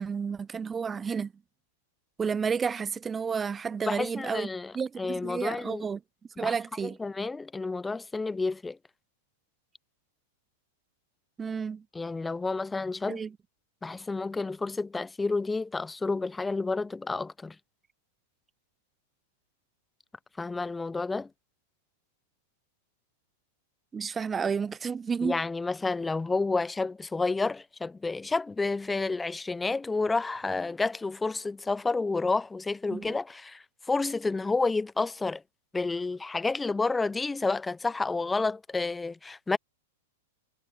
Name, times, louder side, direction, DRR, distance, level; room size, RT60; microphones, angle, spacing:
voice 1, 0.0-1.3 2.2-4.5 4.7-6.0 6.4-7.0 11.4-11.8 13.1-13.3 23.9-25.4 32.9-33.1, right 6 dB, 20° right, 0.4 m, -31 dB
voice 2, 3.9-5.9 6.4-6.6 6.8-8.8 11.9-13.2 13.8-17.6 20.4-21.3 25.2-35.4 35.7-39.6, left 3 dB, 10° left, 0.8 m, -30 dB
hypercardioid pair, 110°, 0 cm